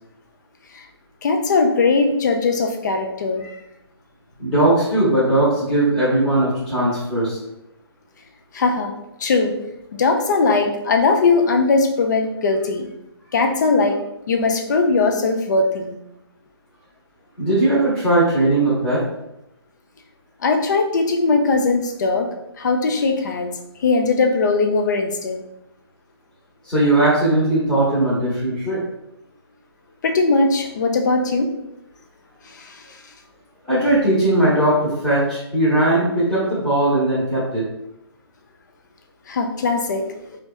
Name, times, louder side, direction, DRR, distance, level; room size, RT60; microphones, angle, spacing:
voice 1, 1.2-3.4 8.5-8.9 9.2-9.5 9.9-12.9 13.3-14.0 14.3-15.9 20.4-22.3 22.6-23.5 23.8-25.4 30.0-31.5 32.5-32.8 39.3-40.4, left 3 dB, 45° left, 4 dB, 0.3 m, -19 dB
voice 2, 4.4-7.4 17.4-19.0 26.7-28.8 33.7-37.6, right 1 dB, 5° left, -11 dB, 0.8 m, -19 dB
2.6 x 2.2 x 2.2 m, 0.86 s
hypercardioid pair, 155°, 14 cm